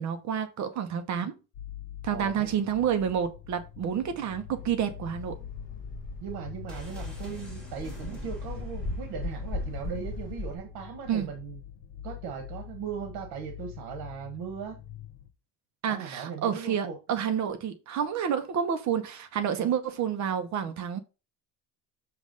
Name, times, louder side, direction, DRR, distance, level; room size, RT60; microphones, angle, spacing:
voice 1, 0.0-1.3 2.0-5.4 11.1-11.3 15.8-21.0, right 8 dB, 45° right, 0.9 m, -29 dB
sound 1, 1.5-15.3, left 11 dB, 75° left, 1.0 m, -45 dB
voice 2, 2.1-2.5 6.2-11.6 12.0-14.8 15.9-17.0 19.6-19.7, right 7 dB, 70° right, 1.4 m, -38 dB
sound 2, 4.5-10.6, left 2 dB, 20° left, 1.4 m, -38 dB
sound 3, 6.7-10.5 10.7-10.8, equal, ahead, 2.4 m, -46 dB
7.0 x 3.3 x 5.2 m
cardioid pair, 155°, 39 cm